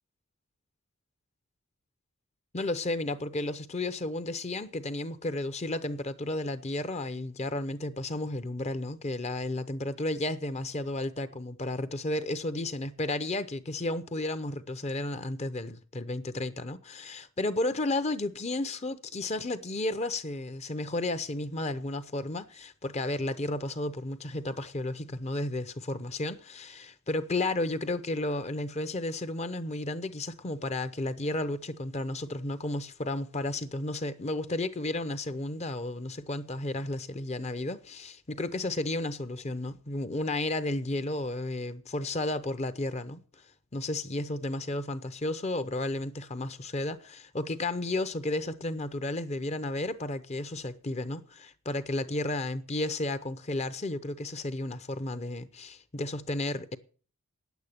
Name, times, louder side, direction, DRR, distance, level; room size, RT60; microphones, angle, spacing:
voice 1, 2.5-43.2 43.7-56.8, left 2 dB, 30° left, 0.7 m, -33 dB
9.7 x 8.1 x 8.5 m
head